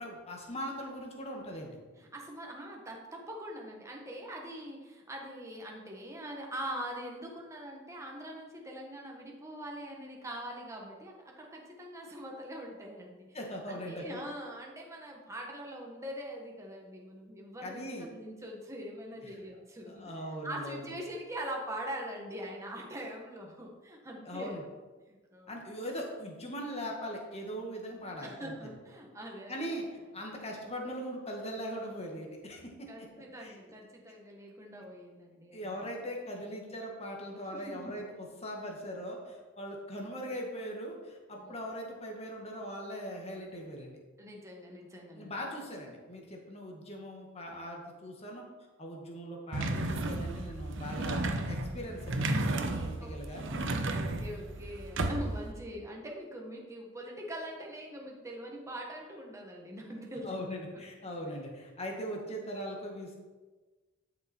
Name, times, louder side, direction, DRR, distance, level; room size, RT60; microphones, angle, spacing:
voice 1, 0.0-1.8 13.3-14.2 17.6-18.1 19.2-19.3 19.9-20.9 24.3-24.6 25.5-28.7 29.5-33.1 33.4-33.6 35.5-44.0 45.1-48.4 48.8-53.4 60.2-63.1, equal, 30° left, 0 dB, 1.8 m, -40 dB
voice 2, 2.0-13.4 13.7-20.1 20.4-24.6 25.1-25.5 28.2-29.8 32.9-35.8 37.5-37.9 41.4-41.6 44.2-45.4 52.7-53.1 53.7-60.4 60.7-60.8 61.3-61.4, right 1 dB, 15° right, -1 dB, 1.4 m, -43 dB
sound 1, 49.5-55.5, right 2 dB, 60° right, 0.9 m, -33 dB
11.5 x 6.7 x 4.5 m, 1.3 s
head